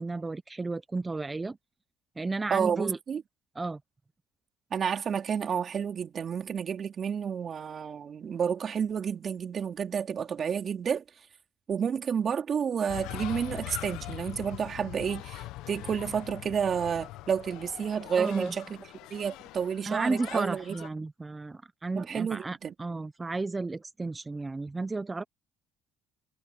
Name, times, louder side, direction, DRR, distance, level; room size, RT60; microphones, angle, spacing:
voice 1, 0.0-1.6 2.2-3.0 3.5-3.8 18.2-18.5 19.8-25.2, right 3 dB, 20° right, 1.0 m, -33 dB
voice 2, 2.5-3.2 4.7-11.0 11.7-18.8 19.1-20.7 21.9-22.7, right 7 dB, 50° right, 3.3 m, -30 dB
sound 1, 12.9-20.9, left 17 dB, 80° left, 1.2 m, -42 dB
supercardioid pair, 80°, 0 cm